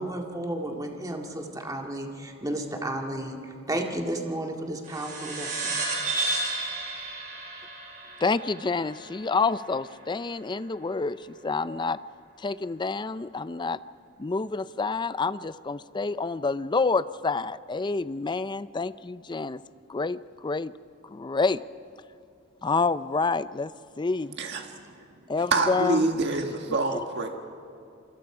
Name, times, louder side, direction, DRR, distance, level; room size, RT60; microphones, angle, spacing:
voice 1, 0.0-5.7, right 1 dB, 20° right, 2 dB, 2.0 m, -33 dB
sound 1, 4.8-9.8, right 2 dB, 40° right, 5.3 m, -32 dB
voice 2, 8.2-12.0 12.4-13.8 14.2-19.6 19.9-20.7 21.1-21.6 22.6-23.7 24.0-24.4 25.3-26.1 26.9-27.0, left 4 dB, 20° left, 15 dB, 0.5 m, -28 dB
voice 3, 25.5-27.3, right 2 dB, 55° right, 4 dB, 1.6 m, -26 dB
28.5 x 24.0 x 5.0 m, 2.6 s
head